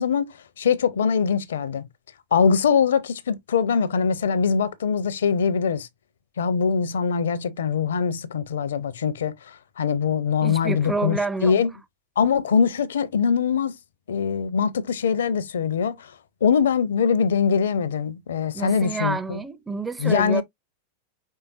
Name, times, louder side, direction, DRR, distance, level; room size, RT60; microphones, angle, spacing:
voice 1, 0.0-1.9 2.3-5.9 6.4-11.7 12.2-13.7 14.1-16.1 16.4-19.4 20.0-20.4, left 6 dB, 65° left, 0.5 m, -22 dB
voice 2, 10.4-11.5 18.5-20.4, right 3 dB, 10° right, 0.5 m, -28 dB
5.6 x 3.3 x 2.4 m
figure-of-eight pair, 90°, 0 cm